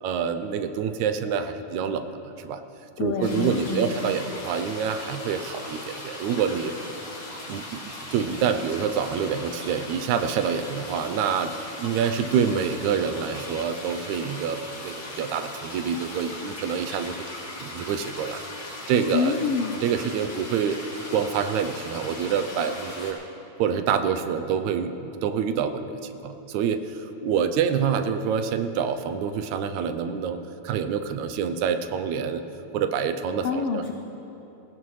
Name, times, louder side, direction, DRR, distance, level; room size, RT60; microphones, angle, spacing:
voice 1, 0.0-2.1 2.4-2.6 3.0-6.7 7.5-7.8 8.1-11.5 11.8-17.2 17.6-19.4 19.8-20.8 21.1-23.2 23.6-24.9 25.2-30.4 30.6-32.4 32.7-33.9, right 7 dB, 80° right, 9 dB, 1.9 m, -27 dB
voice 2, 3.0-3.9 19.1-19.8 33.4-33.9, left 6 dB, 80° left, 4 dB, 1.3 m, -27 dB
sound 1, 3.2-23.1, left 2 dB, 60° left, 4.4 m, -39 dB
20.0 x 17.0 x 3.2 m, 3.0 s
omnidirectional pair, 3.4 m